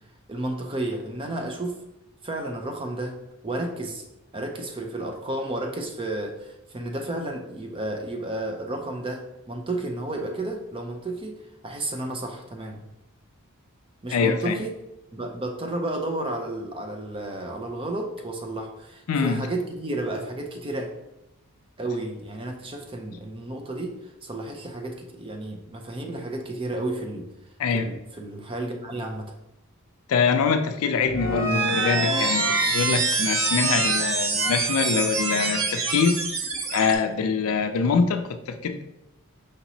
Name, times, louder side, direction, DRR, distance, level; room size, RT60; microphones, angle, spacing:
voice 1, 0.3-1.8 2.2-3.1 3.4-4.0 4.3-11.4 11.6-12.8 14.0-14.7 15.1-20.9 21.8-23.9 24.2-27.2 27.7-29.3, right 2 dB, 25° right, 3 dB, 0.5 m, -32 dB
voice 2, 14.1-14.6 19.1-19.5 27.6-27.9 30.1-36.2 36.7-38.8, left 5 dB, 70° left, 8 dB, 0.4 m, -24 dB
sound 1, 31.0-36.9, right 3 dB, 60° right, 0.6 m, -25 dB
5.1 x 2.9 x 2.7 m, 0.89 s
head